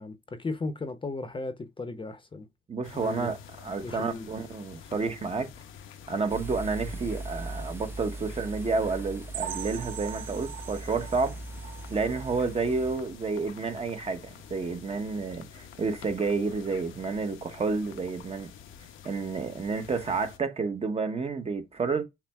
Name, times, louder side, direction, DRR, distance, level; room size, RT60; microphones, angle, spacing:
voice 1, 0.0-2.4 2.9-3.3 3.8-4.3, left 3 dB, 25° left, 0.7 m, -35 dB
voice 2, 2.7-5.5 6.1-11.4 11.9-18.5 19.0-22.0, right 4 dB, 30° right, 0.9 m, -30 dB
sound 1, 2.8-20.4, left 8 dB, 80° left, 0.8 m, -48 dB
sound 2, 6.3-13.0, right 2 dB, 10° right, 0.4 m, -40 dB
sound 3, 9.3-13.0 13.3-13.5 13.9-14.0 14.5-14.6, right 10 dB, 80° right, 0.6 m, -41 dB
5.8 x 2.1 x 3.4 m
cardioid pair, 90°, 20 cm